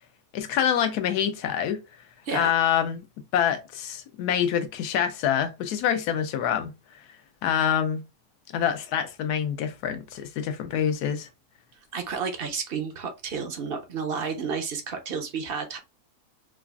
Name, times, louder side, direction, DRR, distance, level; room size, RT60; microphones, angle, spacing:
voice 1, 0.3-1.8 2.3-3.0 3.3-6.7 7.4-8.0 8.5-11.3, left 9 dB, 80° left, 1.2 m, -26 dB
voice 2, 11.9-15.8, right 5 dB, 50° right, 0.7 m, -31 dB
4.8 x 2.4 x 2.3 m
omnidirectional pair, 1.6 m